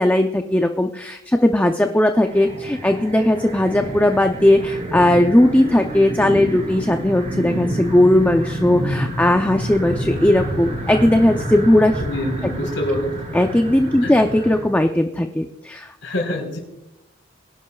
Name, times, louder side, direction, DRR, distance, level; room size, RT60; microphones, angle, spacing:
voice 1, 0.0-12.0 13.3-15.9, left 1 dB, 10° left, 5 dB, 0.5 m, -17 dB
sound 1, 2.2-14.6, right 1 dB, 40° right, 4.8 m, -28 dB
voice 2, 12.0-13.1 14.0-14.1 16.0-16.6, left 1 dB, 75° left, 2 dB, 4.1 m, -25 dB
23.5 x 11.0 x 2.3 m, 0.93 s
head